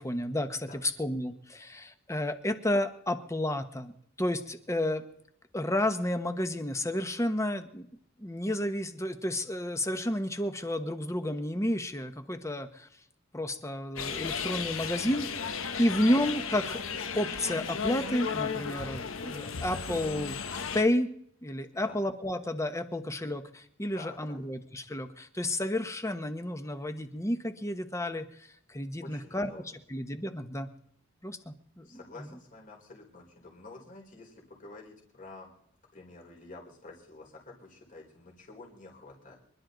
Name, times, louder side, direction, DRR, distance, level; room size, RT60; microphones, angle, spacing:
voice 1, 0.0-3.9 4.2-5.0 5.5-7.9 8.2-12.9 13.3-16.8 17.1-20.4 20.7-21.1 21.4-28.3 28.7-29.5 29.9-30.7 31.2-31.9, left 1 dB, 15° left, 9 dB, 1.1 m, -31 dB
sound 1, 14.0-20.8, left 6 dB, 75° left, 1.2 m, -35 dB
voice 2, 23.9-24.4 29.0-29.8 31.8-35.5 35.9-39.4, left 2 dB, 40° left, -1 dB, 4.6 m, -49 dB
25.5 x 12.0 x 4.0 m, 0.68 s
head